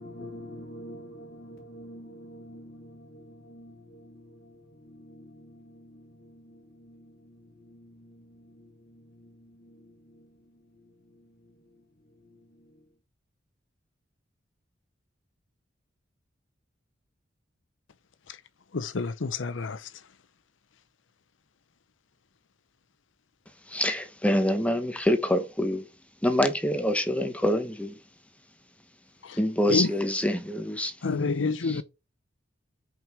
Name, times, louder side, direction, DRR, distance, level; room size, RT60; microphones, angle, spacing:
voice 1, 0.0-4.5 4.8-7.1 7.6-8.2 8.5-8.7 9.2-9.3 9.6-9.8, equal, 55° left, 1.6 m, -46 dB
voice 2, 18.7-19.9 29.2-29.4 29.7-29.9 31.0-31.8, left 4 dB, 80° left, 0.7 m, -28 dB
voice 3, 23.7-25.9 26.2-28.0 29.3-31.0 31.7-31.8, left 1 dB, 5° left, 1.1 m, -26 dB
6.0 x 5.5 x 4.6 m
head